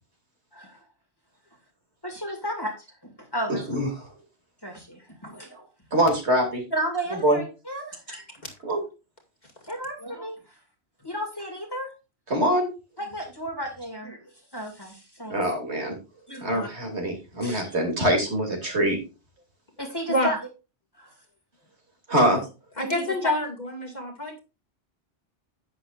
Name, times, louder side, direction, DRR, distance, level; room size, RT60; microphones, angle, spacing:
voice 1, 2.0-2.7 3.0-3.6 4.6-5.7 6.7-8.0 9.7-10.4 11.0-11.9 13.0-15.3 16.3-16.7 17.4-17.6 19.8-20.4 20.9-21.1 22.8-23.1, right 1 dB, 20° left, 3 dB, 2.2 m, -33 dB
voice 2, 5.9-6.6 7.1-7.4 8.6-8.8 12.3-12.7 15.3-16.0 16.4-19.0 22.1-22.4, right 1 dB, 65° right, 1 dB, 3.1 m, -23 dB
voice 3, 8.1-8.5 20.1-20.3 22.3-22.4 22.8-24.4, left 1 dB, 35° left, 0 dB, 2.3 m, -28 dB
11.0 x 8.5 x 2.5 m, 0.29 s
omnidirectional pair, 1.2 m